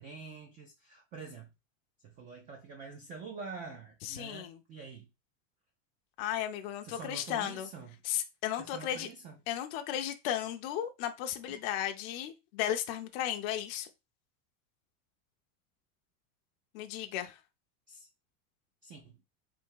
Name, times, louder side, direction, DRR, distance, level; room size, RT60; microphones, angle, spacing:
voice 1, 0.0-1.5 2.0-5.1 6.8-8.0 8.6-9.4 11.5-11.6 17.9-18.1 18.8-19.2, right 4 dB, 20° right, 0.4 m, -46 dB
voice 2, 4.0-4.6 6.2-7.7 8.0-9.1 9.5-13.9 16.7-17.4, left 11 dB, 45° left, 0.5 m, -35 dB
3.5 x 2.6 x 4.6 m
supercardioid pair, 165°, 40 cm